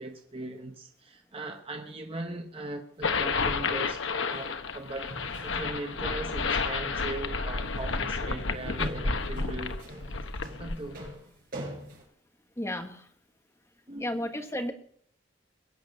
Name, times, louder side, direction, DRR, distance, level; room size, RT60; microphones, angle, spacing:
voice 1, 0.0-5.2 5.4-9.8 10.6-11.1 13.9-14.2, right 2 dB, 30° right, 1.1 m, -39 dB
sound 1, 3.0-11.1, left 4 dB, 85° left, 1.1 m, -31 dB
sound 2, 3.0-3.8 4.3-4.4 5.0-5.8 6.3-6.5 7.0-7.4 7.6-7.9 8.2-12.0, right 1 dB, 50° right, 6.2 m, -43 dB
voice 2, 12.6-13.1 14.0-14.7, left 1 dB, 15° left, 1.5 m, -33 dB
22.0 x 8.6 x 6.5 m
head